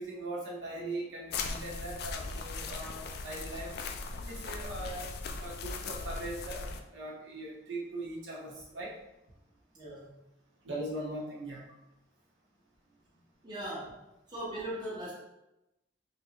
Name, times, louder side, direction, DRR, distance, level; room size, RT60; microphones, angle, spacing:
voice 1, 0.0-3.8 4.2-5.1 5.4-8.9 10.6-11.7, right 1 dB, 75° right, -4 dB, 1.0 m, -40 dB
sound 1, 1.3-6.8, left 4 dB, 55° left, 0.3 m, -39 dB
voice 2, 9.7-10.1 13.4-14.0 14.3-15.1, right 1 dB, 25° right, -7 dB, 0.8 m, -39 dB
3.3 x 3.0 x 2.8 m, 0.91 s
head